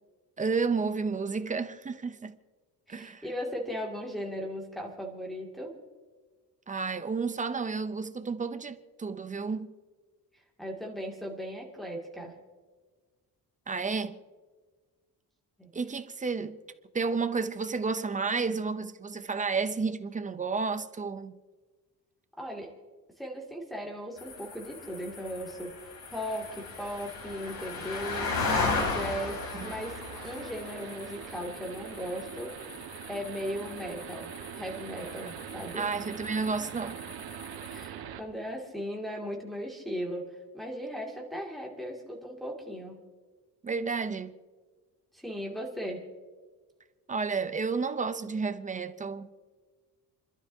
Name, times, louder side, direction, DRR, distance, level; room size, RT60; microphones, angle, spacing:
voice 1, 0.4-2.4 2.9-3.2 6.7-9.7 13.7-14.2 15.7-16.6 16.9-21.3 29.5-29.8 35.8-37.0 43.6-44.3 47.1-49.3, right 4 dB, 20° right, 0.5 m, -31 dB
voice 2, 2.9-5.7 10.3-12.3 15.6-15.7 22.4-22.7 23.2-28.4 28.8-32.5 33.1-34.3 34.6-35.9 37.7-40.2 40.5-43.1 45.1-46.0, equal, ahead, 2.2 m, -37 dB
sound 1, 24.2-37.9, left 3 dB, 80° left, 3.9 m, -37 dB
sound 2, 29.6-38.2, right 9 dB, 85° right, 1.4 m, -43 dB
29.5 x 12.0 x 2.7 m
cardioid pair, 175°, 36 cm